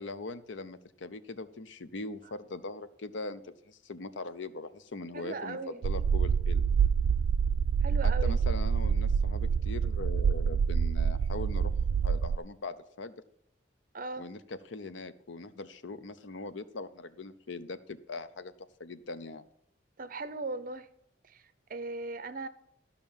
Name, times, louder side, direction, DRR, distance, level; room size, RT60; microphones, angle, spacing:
voice 1, 0.0-5.6 5.8-6.7 8.0-11.7 12.0-13.1 14.2-19.4, left 3 dB, 70° left, 13 dB, 0.7 m, -41 dB
voice 2, 5.1-5.9 7.8-8.4 13.9-14.3 20.0-20.9 21.2-22.5, right 3 dB, 45° right, 13 dB, 0.7 m, -38 dB
sound 1, 5.8-12.4, right 6 dB, 90° right, 0.3 m, -27 dB
12.5 x 5.8 x 7.3 m, 0.73 s
head